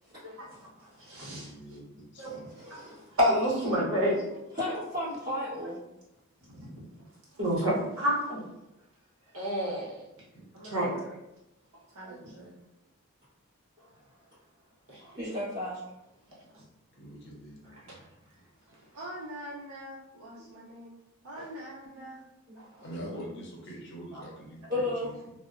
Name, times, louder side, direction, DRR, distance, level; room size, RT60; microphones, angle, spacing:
voice 1, 0.2-1.5 2.2-4.3 6.5-6.8 7.4-8.4 9.3-10.1 10.7-11.0 12.0-12.2 14.9-15.2 16.5-16.6 17.8-18.0 21.4-21.5 22.6-22.8 24.1-24.2, equal, 65° right, -5 dB, 0.9 m, -30 dB
voice 2, 1.2-2.4 10.3-10.5 17.0-18.0 22.8-25.3, equal, 50° left, -2 dB, 0.6 m, -44 dB
voice 3, 2.5-3.0 4.5-5.8 15.2-15.8 20.4-20.5 22.0-22.1 24.7-25.1, left 1 dB, 20° right, -18 dB, 1.2 m, -33 dB
voice 4, 10.5-11.1 11.9-12.5 18.9-20.9 21.2-22.2 22.8-23.5, right 1 dB, 85° right, -6 dB, 0.5 m, -44 dB
2.7 x 2.0 x 2.4 m, 0.90 s
head